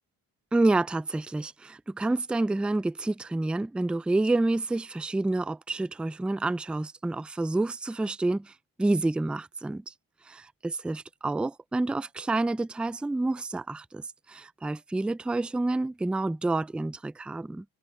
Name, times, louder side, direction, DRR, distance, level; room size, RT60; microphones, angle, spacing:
voice 1, 0.5-8.5 8.8-9.9 10.3-17.6, right 2 dB, 5° right, 0.3 m, -28 dB
cardioid pair, 75°, 41 cm